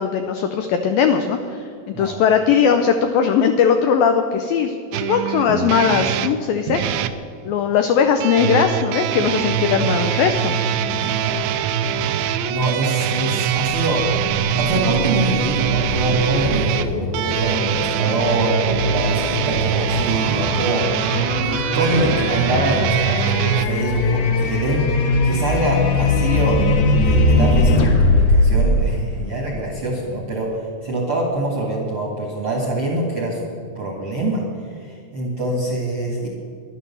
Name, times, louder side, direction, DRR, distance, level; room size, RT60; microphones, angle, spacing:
voice 1, 0.0-6.8 7.5-10.5, left 7 dB, 80° left, 7 dB, 2.1 m, -19 dB
sound 1, 4.9-7.2 8.2-23.7, right 9 dB, 85° right, 2.2 m, -23 dB
voice 2, 10.9-11.4 12.5-14.0 14.6-20.8 21.4-33.5 33.7-34.4 34.8-36.3, right 2 dB, 50° right, -1 dB, 1.7 m, -24 dB
sound 2, 13.5-29.7, left 2 dB, 65° left, 2.0 m, -21 dB
12.0 x 11.5 x 6.9 m, 2.3 s
omnidirectional pair, 4.9 m